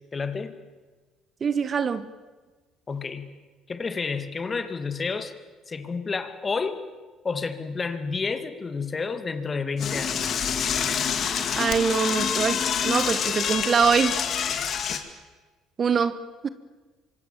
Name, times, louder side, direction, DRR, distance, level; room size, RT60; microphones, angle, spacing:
voice 1, 0.1-0.6 2.9-3.3 3.7-5.3 5.7-6.9 7.2-10.4, left 4 dB, 30° left, 10 dB, 2.3 m, -30 dB
voice 2, 1.4-2.0 11.6-14.2 15.8-16.2 16.4-16.5, right 6 dB, 40° right, 14 dB, 1.3 m, -23 dB
Door / Toilet flush, 9.8-15.0, left 7 dB, 50° left, 2.4 m, -27 dB
26.0 x 24.0 x 7.4 m, 1.3 s
hypercardioid pair, 55°, 0 cm